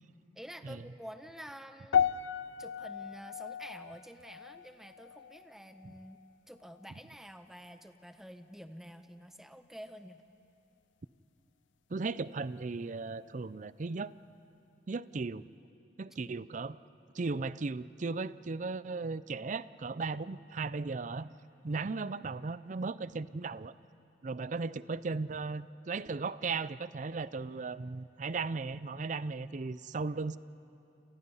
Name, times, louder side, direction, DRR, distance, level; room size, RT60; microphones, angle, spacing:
voice 1, 0.3-2.1 2.6-6.2 6.5-10.2 16.2-16.4, equal, ahead, 8 dB, 0.9 m, -49 dB
sound 1, 1.9-6.3 6.6-7.0 7.6-7.7, left 7 dB, 85° left, 0.5 m, -35 dB
voice 2, 11.9-14.1 14.9-15.5 16.0-16.8 17.1-21.3 21.6-23.7 24.2-30.4, right 4 dB, 45° right, 17 dB, 0.5 m, -36 dB
29.0 x 28.0 x 5.6 m, 2.9 s
head